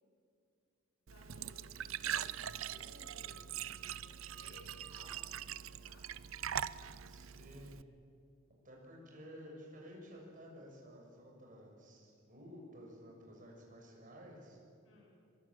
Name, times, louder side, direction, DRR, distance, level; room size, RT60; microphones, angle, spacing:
voice 1, 1.1-6.1 14.8-15.2, left 2 dB, 80° left, -2 dB, 7.1 m, -61 dB
Glass / Trickle dribble / Fill (with liquid), 1.1-7.8, right 9 dB, 80° right, 0.6 m, -42 dB
voice 2, 7.0-7.8 8.6-14.6, equal, 40° right, -1 dB, 6.8 m, -53 dB
23.0 x 22.5 x 8.9 m, 2.4 s
head